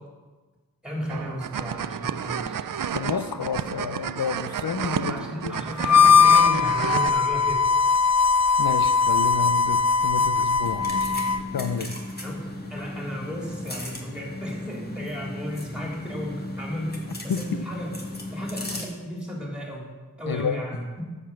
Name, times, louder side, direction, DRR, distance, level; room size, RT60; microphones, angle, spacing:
voice 1, 0.8-2.6 5.1-7.7 12.2-17.9 18.3-19.9 20.2-21.2, equal, 5° right, -2 dB, 3.5 m, -34 dB
sound 1, 1.1-7.1, right 8 dB, 70° right, 0.5 m, -31 dB
voice 2, 2.9-5.6 8.6-11.1 11.5-11.9 17.3-17.6 20.3-20.6, left 6 dB, 90° left, 11 dB, 0.7 m, -30 dB
Harmonica, 5.8-11.5, left 5 dB, 50° left, 0.5 m, -20 dB
sound 2, 10.6-18.9, left 1 dB, 30° left, 1.8 m, -35 dB
13.0 x 5.5 x 7.7 m, 1.3 s
wide cardioid pair, 75°, 34 cm